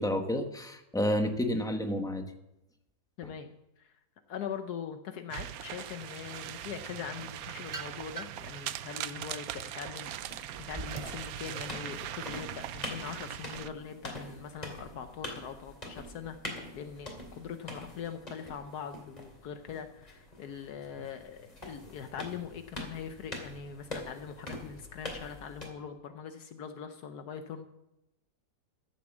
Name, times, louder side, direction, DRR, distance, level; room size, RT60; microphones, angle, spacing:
voice 1, 0.0-2.3, left 1 dB, 5° left, 5 dB, 0.8 m, -30 dB
voice 2, 3.2-3.9 4.3-27.7, left 7 dB, 75° left, 8 dB, 1.3 m, -42 dB
sound 1, 5.3-13.7, right 12 dB, 70° right, 0.9 m, -41 dB
sound 2, 7.2-8.5 9.1-11.3, right 4 dB, 30° right, 0.6 m, -43 dB
sound 3, 10.2-25.7, left 1 dB, 25° left, 2.7 m, -45 dB
13.5 x 7.4 x 7.2 m, 0.90 s
omnidirectional pair, 1.7 m